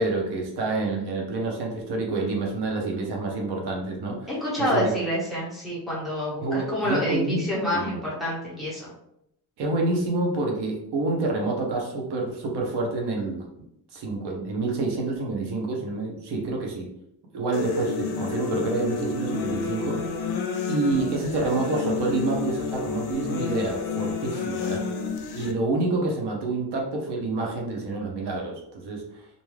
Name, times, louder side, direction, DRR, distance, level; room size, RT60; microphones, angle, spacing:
voice 1, 0.0-4.3 4.6-4.9 6.4-7.4 7.7-8.0 9.6-13.4 13.9-16.9 17.3-20.0 20.7-24.8 25.3-29.3, right 3 dB, 75° right, 0 dB, 0.8 m, -28 dB
voice 2, 4.3-8.9, equal, ahead, -7 dB, 1.0 m, -27 dB
sound 1, 17.5-25.5, left 5 dB, 70° left, 0.5 m, -30 dB
2.6 x 2.3 x 3.1 m, 0.79 s
cardioid pair, 160°, 41 cm